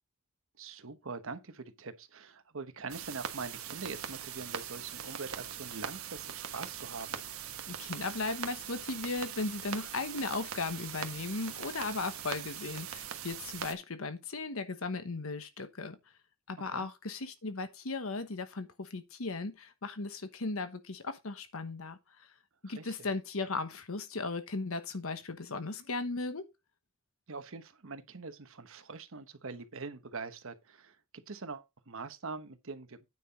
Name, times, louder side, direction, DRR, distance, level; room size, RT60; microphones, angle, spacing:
voice 1, 0.6-7.2 16.7-16.9 22.6-23.1 27.3-31.0 31.3-33.0, right 4 dB, 70° right, 1.1 m, -43 dB
sound 1, 2.9-13.7, right 8 dB, 90° right, 1.3 m, -41 dB
voice 2, 7.7-16.0 16.5-22.3 22.6-26.4, left 3 dB, 70° left, 1.1 m, -37 dB
9.3 x 5.6 x 4.1 m
head